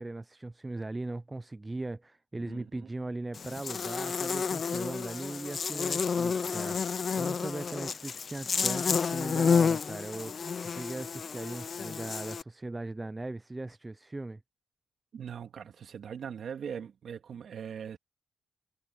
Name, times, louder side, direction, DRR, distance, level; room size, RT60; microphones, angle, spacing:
voice 1, 0.0-14.4, right 2 dB, 20° right, 0.8 m, -39 dB
voice 2, 2.3-2.9 15.1-18.0, right 7 dB, 65° right, 2.8 m, -41 dB
Buzz, 3.3-12.4, left 5 dB, 50° left, 0.9 m, -30 dB
supercardioid pair, 60°, 0 cm